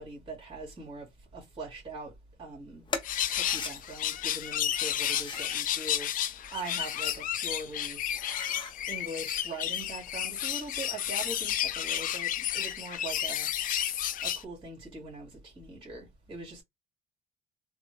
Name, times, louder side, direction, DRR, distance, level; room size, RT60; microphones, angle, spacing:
voice 1, 0.0-2.1 2.4-2.8 3.3-6.1 6.5-8.0 8.9-13.5 14.2-16.6, right 2 dB, 30° right, 2.1 m, -42 dB
sound 1, 2.9-3.7 4.8-5.5 6.4-7.2 7.6-7.7 8.1-8.7, left 4 dB, 30° left, 0.7 m, -40 dB
sound 2, 3.0-14.4, left 11 dB, 55° left, 0.4 m, -32 dB
3.5 x 2.2 x 2.8 m
cardioid pair, 110°, 17 cm